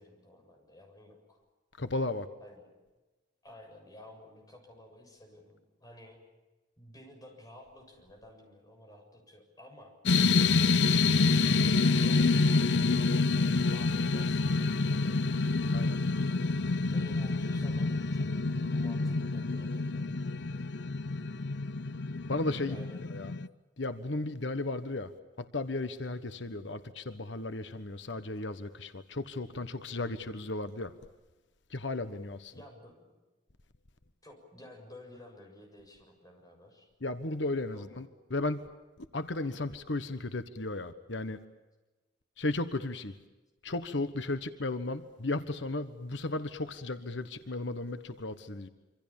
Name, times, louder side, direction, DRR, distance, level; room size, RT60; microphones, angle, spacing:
voice 1, 0.0-1.4 2.4-2.7 3.4-6.2 6.8-10.0 11.2-12.7 13.3-15.3 16.9-20.1 22.6-23.1 32.5-33.0 34.2-36.9 37.7-38.1, left 1 dB, 20° left, 3 dB, 7.2 m, -53 dB
voice 2, 1.8-2.3 15.7-16.0 22.3-22.7 23.1-23.3 23.8-25.1 25.4-30.9 31.7-32.5 37.0-38.0 38.3-38.7 39.1-41.4 42.4-43.1 43.6-48.7, left 2 dB, 90° left, 11 dB, 1.3 m, -35 dB
sound 1, 10.1-23.5, left 3 dB, 70° left, 0.8 m, -27 dB
27.0 x 25.5 x 7.2 m, 1.1 s
head